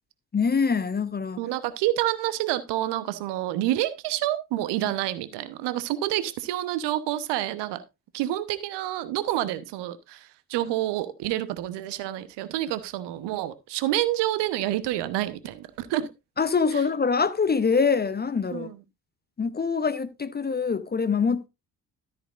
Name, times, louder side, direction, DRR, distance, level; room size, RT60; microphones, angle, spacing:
voice 1, 0.3-1.4 16.4-18.7 19.4-21.5, left 5 dB, 20° left, 0.8 m, -24 dB
voice 2, 1.4-7.8 8.1-16.1 16.7-16.8 18.5-18.8, right 14 dB, 60° right, 1.0 m, -28 dB
13.0 x 8.9 x 2.5 m
figure-of-eight pair, 40°, 47 cm